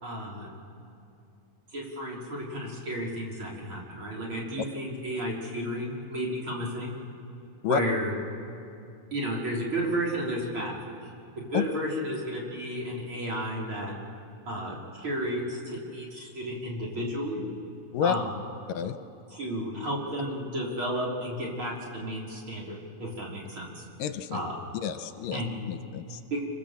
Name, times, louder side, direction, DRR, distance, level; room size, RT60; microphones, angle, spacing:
voice 1, 0.0-0.5 1.7-6.9 7.6-8.1 9.1-10.8 11.4-13.9 14.5-17.4 18.0-18.3 19.3-23.8 24.3-24.5 25.3-25.6 26.3-26.4, equal, 35° right, -3 dB, 4.0 m, -32 dB
voice 2, 24.0-24.4 24.8-25.4 25.7-26.2, left 8 dB, 80° left, 9 dB, 2.4 m, -29 dB
29.0 x 25.5 x 7.4 m, 2.6 s
omnidirectional pair, 4.0 m